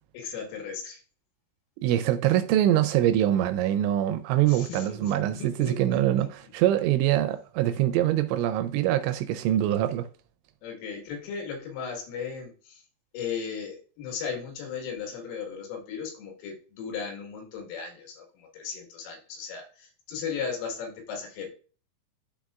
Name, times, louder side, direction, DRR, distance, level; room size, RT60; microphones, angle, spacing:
voice 1, 0.1-1.0 4.5-6.3 10.6-12.8 13.1-21.5, left 6 dB, 90° left, 4.2 m, -36 dB
voice 2, 1.8-10.1, right 12 dB, 85° right, 2.8 m, -24 dB
13.0 x 4.3 x 2.4 m
omnidirectional pair, 5.6 m